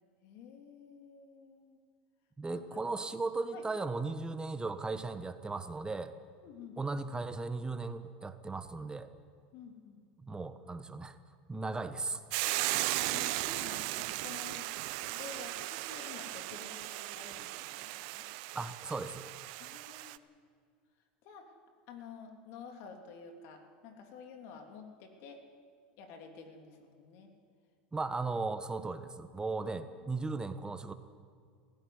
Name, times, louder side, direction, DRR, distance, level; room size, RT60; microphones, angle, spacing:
voice 1, 0.2-1.8 2.5-2.8 3.5-3.7 6.4-6.8 9.5-10.0 13.1-14.7 15.0-18.3 19.6-20.3 21.2-21.5 21.9-25.4 26.0-27.3 29.6-30.3, left 5 dB, 60° left, 3 dB, 3.2 m, -50 dB
voice 2, 2.4-6.1 6.8-9.1 10.2-11.1 11.5-12.2 18.5-19.3 27.9-30.9, right 3 dB, 15° right, 10 dB, 1.4 m, -37 dB
Hiss / Boiling, 12.3-20.2, right 20 dB, 65° right, 0.7 m, -37 dB
17.5 x 16.0 x 9.6 m, 2.1 s
hypercardioid pair, 95°, 5 cm